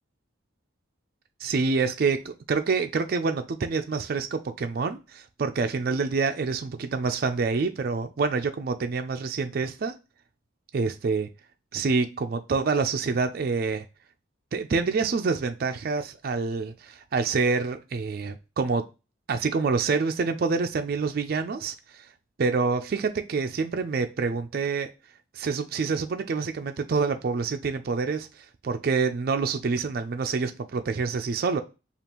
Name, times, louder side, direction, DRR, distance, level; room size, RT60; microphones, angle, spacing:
voice 1, 1.4-9.9 10.7-11.3 11.7-13.9 14.5-18.9 19.3-22.1 22.4-24.9 25.3-28.3 28.6-31.6, right 4 dB, 50° right, 7 dB, 0.3 m, -27 dB
5.1 x 2.4 x 2.9 m, 0.29 s
head